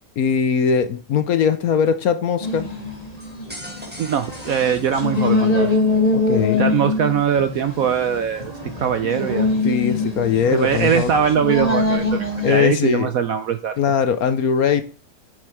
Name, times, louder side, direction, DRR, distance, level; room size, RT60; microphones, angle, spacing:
voice 1, 0.2-2.7 6.1-6.7 9.6-11.1 12.4-13.1 13.8-14.8, left 7 dB, 65° left, 10 dB, 1.0 m, -20 dB
sound 1, 2.4-12.6, left 3 dB, 20° left, 2.3 m, -23 dB
sound 2, 3.2-5.7, equal, 5° right, 1.6 m, -41 dB
voice 2, 4.0-5.8 6.6-9.5 10.5-13.7, right 8 dB, 70° right, 9 dB, 0.8 m, -21 dB
7.5 x 6.3 x 4.8 m, 0.38 s
omnidirectional pair, 2.0 m